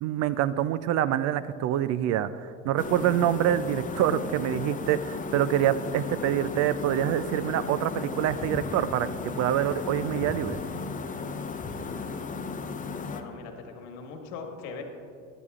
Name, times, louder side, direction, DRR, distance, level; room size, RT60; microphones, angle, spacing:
voice 1, 0.0-10.6, right 11 dB, 45° right, 15 dB, 0.4 m, -26 dB
sound 1, 2.8-13.2, left 4 dB, 20° left, 0.7 m, -35 dB
voice 2, 13.0-14.8, left 5 dB, 65° left, 4 dB, 1.6 m, -40 dB
15.0 x 10.5 x 2.5 m, 2.5 s
hypercardioid pair, 85°, 37 cm